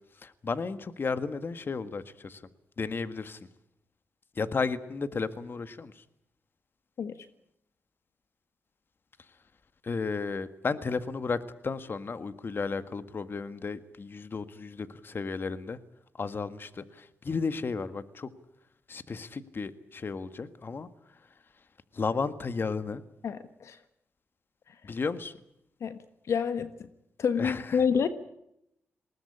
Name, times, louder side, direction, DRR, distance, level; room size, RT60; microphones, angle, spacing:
voice 1, 0.2-2.4 2.8-3.4 4.3-6.0 9.8-15.8 16.2-18.3 18.9-21.2 21.9-23.0 24.8-25.3 27.3-27.8, left 4 dB, 45° left, 12 dB, 1.7 m, -33 dB
voice 2, 23.2-23.8 25.8-26.0 26.3-26.9 27.2-28.1, left 6 dB, 70° left, 11 dB, 1.4 m, -28 dB
20.5 x 18.0 x 10.0 m, 0.78 s
cardioid pair, 65°, 5 cm